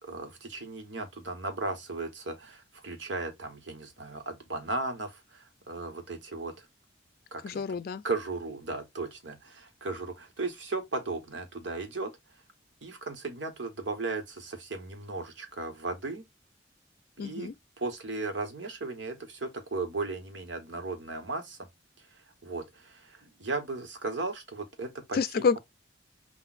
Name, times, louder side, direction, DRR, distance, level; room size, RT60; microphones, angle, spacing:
voice 1, 0.0-6.7 7.3-7.6 8.0-12.1 12.8-16.2 17.2-17.5 17.8-21.6 22.4-25.4, right 3 dB, 90° right, 1.2 m, -36 dB
voice 2, 7.4-8.0 17.2-17.5 25.1-25.6, left 5 dB, 55° left, 0.4 m, -28 dB
6.0 x 2.4 x 2.5 m
head